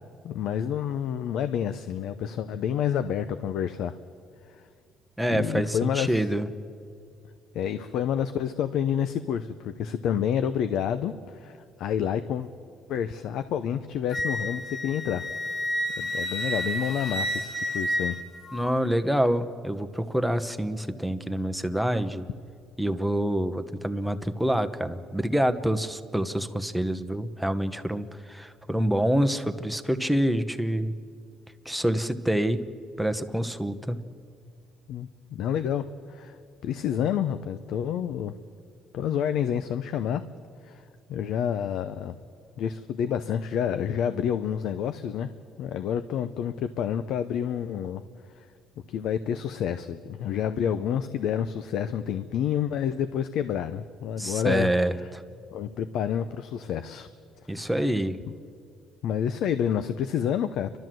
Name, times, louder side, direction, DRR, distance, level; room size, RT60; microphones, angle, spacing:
voice 1, 0.2-3.9 5.3-6.3 7.5-12.5 12.9-15.3 16.0-18.2 34.9-36.4 36.6-38.3 38.9-40.2 40.6-40.8 41.1-42.1 42.6-45.3 45.6-48.0 48.4-48.5 48.9-54.7 55.0-55.1 55.5-57.1 57.5-57.9 59.0-60.8, left 9 dB, 70° left, 10 dB, 0.7 m, -29 dB
voice 2, 5.2-6.5 18.5-22.3 22.8-30.9 31.6-32.6 33.0-34.0 54.2-55.2 57.5-58.2, right 1 dB, ahead, 8 dB, 1.0 m, -26 dB
Wind instrument woodwind instrument, 14.1-18.7, equal, 40° left, 1.8 m, -30 dB
30.0 x 12.5 x 7.7 m, 2.3 s
cardioid pair, 105°, 0 cm